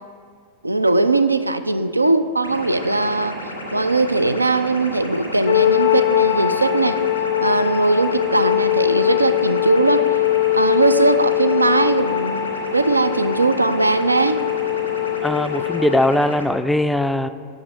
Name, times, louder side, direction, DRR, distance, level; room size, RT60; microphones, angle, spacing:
voice 1, 0.6-3.3 3.7-7.0 7.4-10.0 10.5-14.4, right 2 dB, 85° right, 11 dB, 0.3 m, -19 dB
sound 1, 2.4-16.4, equal, 85° left, 1.3 m, -33 dB
sound 2, 5.5-16.0, left 13 dB, 70° left, 0.6 m, -21 dB
voice 2, 15.2-17.3, left 1 dB, 5° left, 10 dB, 0.3 m, -20 dB
7.7 x 6.0 x 5.2 m, 2.2 s
figure-of-eight pair, 90°, 0 cm